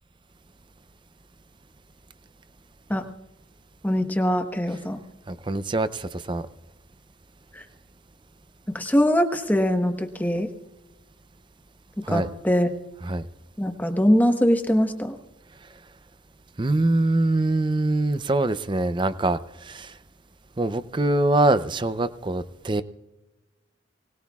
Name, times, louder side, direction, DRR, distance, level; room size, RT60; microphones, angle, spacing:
voice 1, 3.8-5.0 7.6-7.7 8.7-10.5 12.0-12.7 13.6-15.2, equal, 10° left, 5 dB, 1.1 m, -22 dB
voice 2, 5.3-6.5 12.0-12.3 13.0-13.3 16.6-20.0 20.6-22.8, right 2 dB, 25° right, 13 dB, 0.5 m, -24 dB
24.5 x 19.0 x 2.4 m, 1.1 s
head